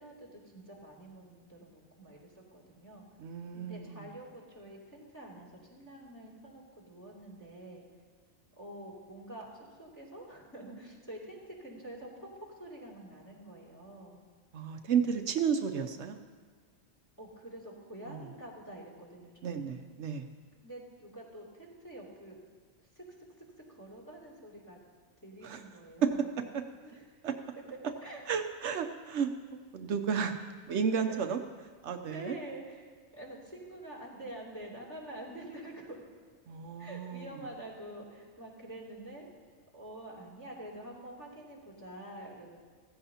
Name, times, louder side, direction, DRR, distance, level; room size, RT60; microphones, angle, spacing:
voice 1, 0.0-3.0 3.5-7.8 8.6-9.5 9.8-12.3 12.6-14.2 17.2-19.7 20.6-22.4 22.9-23.0 23.3-24.8 25.2-26.2 26.8-27.1 28.0-28.2 31.1-31.2 32.0-36.0 36.8-39.2 39.7-42.6, right 1 dB, 15° left, -4 dB, 2.9 m, -47 dB
voice 2, 3.2-4.1 14.5-16.2 18.1-18.2 19.4-20.3 25.4-25.6 26.0-26.1 26.5-26.6 27.2-27.3 28.3-29.3 29.7-30.3 30.7-31.4 31.8-32.3 36.5-37.3, right 7 dB, 75° right, 6 dB, 1.0 m, -32 dB
15.5 x 14.5 x 2.8 m, 1.6 s
omnidirectional pair, 1.2 m